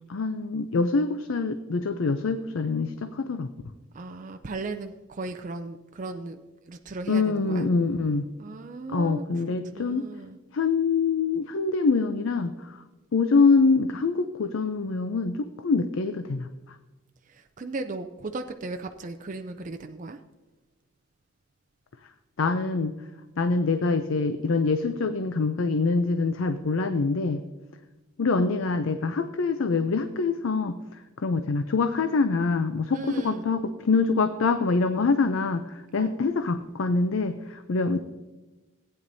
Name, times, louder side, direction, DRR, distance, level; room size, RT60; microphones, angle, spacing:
voice 1, 0.1-3.5 7.1-8.2 8.9-10.1 10.5-12.5 13.1-16.5 22.4-22.9 23.4-27.4 28.2-30.8 31.2-38.0, left 4 dB, 70° left, 9 dB, 0.5 m, -25 dB
voice 2, 3.9-6.4 6.7-7.7 8.4-9.2 9.7-10.4 17.3-20.2 32.9-33.5 36.0-36.2, right 3 dB, 35° right, 5 dB, 0.4 m, -36 dB
16.0 x 9.1 x 2.7 m, 1.1 s
head